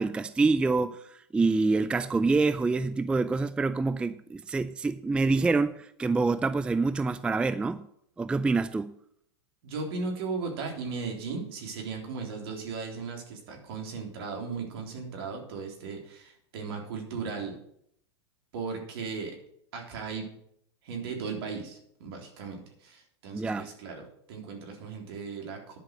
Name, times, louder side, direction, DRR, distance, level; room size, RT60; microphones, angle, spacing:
voice 1, 0.0-7.9 8.2-8.9 23.3-23.7, right 3 dB, 5° right, 13 dB, 0.4 m, -26 dB
voice 2, 9.6-17.6 18.5-19.4 19.7-20.3 20.8-25.8, right 4 dB, 65° right, 2 dB, 3.7 m, -37 dB
10.5 x 5.9 x 7.7 m, 0.70 s
hypercardioid pair, 120°, 14 cm